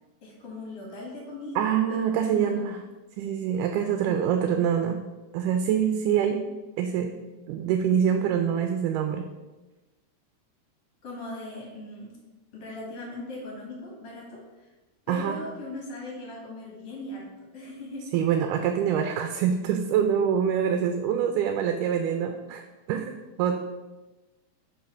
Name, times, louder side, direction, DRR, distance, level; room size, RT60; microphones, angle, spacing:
voice 1, 0.2-2.6 11.0-12.1 12.5-14.7 15.1-18.0, left 1 dB, 55° left, -2 dB, 2.6 m, -39 dB
voice 2, 1.6-2.8 3.2-5.0 5.3-6.4 6.8-7.1 7.5-9.3 15.1-15.4 18.1-22.6 22.9-23.6, right 8 dB, 85° right, 6 dB, 2.1 m, -25 dB
5.4 x 5.1 x 5.6 m, 1.1 s
omnidirectional pair, 3.6 m